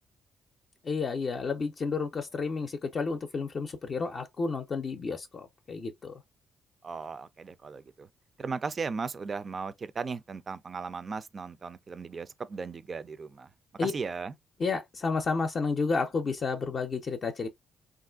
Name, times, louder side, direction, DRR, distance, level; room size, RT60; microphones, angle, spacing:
voice 1, 0.8-6.2 13.8-13.9 14.6-17.5, left 4 dB, 45° left, 0.5 m, -31 dB
voice 2, 6.8-8.1 8.4-13.5 13.8-14.3, right 4 dB, 40° right, 0.4 m, -36 dB
3.1 x 2.5 x 2.3 m
cardioid pair, 90°, 0 cm